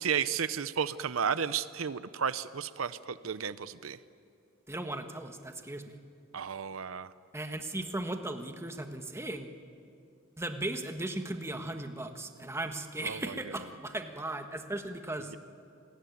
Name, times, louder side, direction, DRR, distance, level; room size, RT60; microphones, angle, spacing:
voice 1, 0.0-4.0 6.3-7.1 13.0-13.3, right 7 dB, 85° right, 14 dB, 0.7 m, -33 dB
voice 2, 4.7-5.9 7.3-9.5 10.4-15.3, right 1 dB, 15° right, 6 dB, 1.5 m, -37 dB
28.5 x 21.0 x 9.4 m, 2.4 s
head